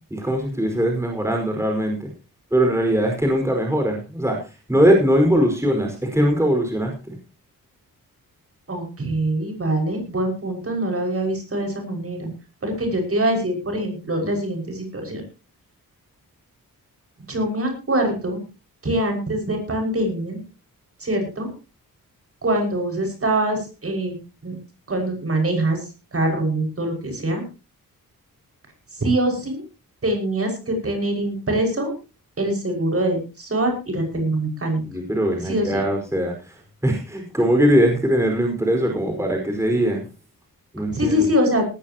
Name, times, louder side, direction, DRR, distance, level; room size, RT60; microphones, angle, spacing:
voice 1, 0.1-2.1 2.5-7.2 34.8-40.0 40.7-41.3, equal, 10° right, 2 dB, 5.0 m, -21 dB
voice 2, 8.7-12.3 12.6-15.2 17.3-18.4 18.8-20.4 21.0-21.5 22.4-24.1 24.4-24.5 24.9-25.8 26.1-27.4 29.0-29.6 30.0-31.9 32.4-34.8 35.5-35.8 40.9-41.7, right 1 dB, 40° right, 3 dB, 6.0 m, -23 dB
18.5 x 14.0 x 3.0 m, 0.30 s
wide cardioid pair, 110°, 35 cm